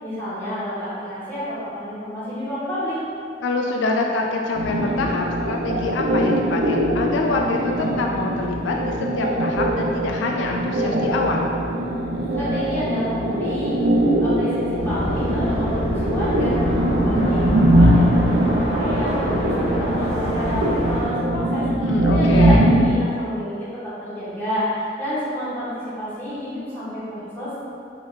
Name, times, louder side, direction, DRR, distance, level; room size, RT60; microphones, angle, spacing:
voice 1, 0.0-3.0 12.3-13.8 14.2-21.7 22.1-27.6, equal, 15° left, -13 dB, 1.4 m, -29 dB
voice 2, 3.4-11.5 21.8-22.6, left 3 dB, 80° left, 1 dB, 0.3 m, -25 dB
sound 1, 4.5-23.0, right 1 dB, 65° right, 0.5 m, -21 dB
sound 2, 14.8-21.0, equal, 35° left, 1.0 m, -26 dB
3.9 x 3.5 x 2.6 m, 2.5 s
head